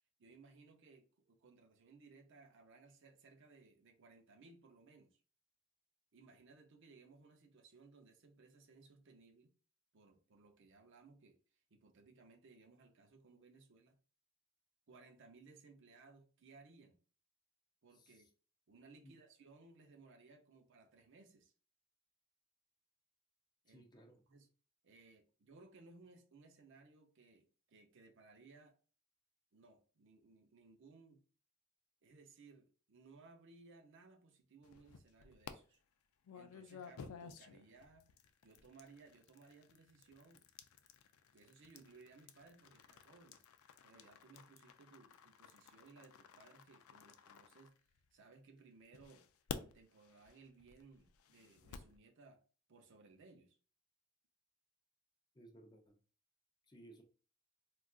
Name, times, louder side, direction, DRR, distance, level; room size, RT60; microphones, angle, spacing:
voice 1, 0.2-5.2 6.1-9.5 9.9-11.4 11.7-14.0 14.9-17.0 17.8-18.3 18.7-21.5 23.6-24.5 24.8-28.8 29.5-31.2 32.0-35.8 36.3-38.1 38.4-40.4 41.3-43.4 43.8-47.7 48.1-49.3 49.5-52.4 52.7-53.6, right 3 dB, 60° right, 0.5 m, -62 dB
voice 2, 17.9-18.3 19.0-19.1 23.7-24.2 55.3-56.0 56.7-57.0, right 1 dB, 20° left, 0.5 m, -60 dB
sound 1, 34.6-35.5 36.2-48.3 48.9-52.0, left 6 dB, 85° left, 0.4 m, -54 dB
3.6 x 2.4 x 2.3 m
head